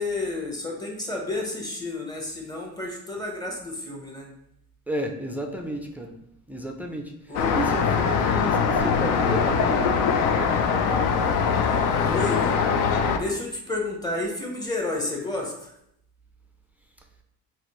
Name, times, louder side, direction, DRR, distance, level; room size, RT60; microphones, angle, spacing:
voice 1, 0.0-4.3 7.3-7.6 12.0-12.6 13.1-15.7, left 2 dB, 10° left, 0 dB, 1.0 m, -30 dB
voice 2, 4.9-6.1 6.5-7.1 7.5-10.7, right 1 dB, 5° right, 3 dB, 0.3 m, -33 dB
Traffic noise roadway noise, 7.3-13.2, left 6 dB, 75° left, 0.5 m, -22 dB
4.1 x 2.8 x 3.0 m, 0.76 s
cardioid pair, 110°, 32 cm